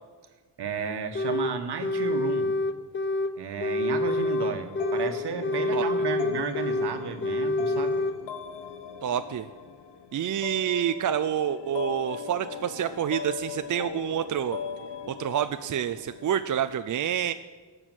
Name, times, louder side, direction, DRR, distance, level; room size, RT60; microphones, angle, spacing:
voice 1, 0.6-2.5 3.4-8.0, right 6 dB, 65° right, 7 dB, 1.5 m, -33 dB
sound 1, 1.2-1.5 1.8-3.3 3.6-5.1 5.4-6.9 7.2-8.2, left 2 dB, 30° left, 0.7 m, -27 dB
sound 2, 4.1-16.7, left 8 dB, 75° left, 1.1 m, -39 dB
voice 2, 9.0-9.5 10.1-14.6 15.1-17.3, right 9 dB, 45° right, 10 dB, 0.5 m, -28 dB
16.0 x 6.3 x 9.1 m, 1.5 s
cardioid pair, 95°, 42 cm